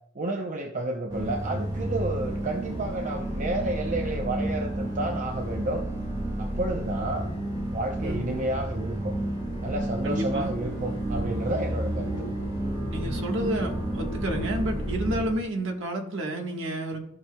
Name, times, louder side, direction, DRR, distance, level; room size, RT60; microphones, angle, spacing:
voice 1, 0.1-5.8 6.4-7.3 7.7-9.1 9.6-12.1, right 1 dB, 35° right, 3 dB, 0.6 m, -31 dB
sound 1, 1.1-15.3, right 1 dB, 20° right, 1.7 m, -31 dB
voice 2, 8.0-8.4 10.0-10.6 12.9-17.0, right 1 dB, 60° right, 2 dB, 1.4 m, -30 dB
14.0 x 5.8 x 2.2 m, 0.75 s
head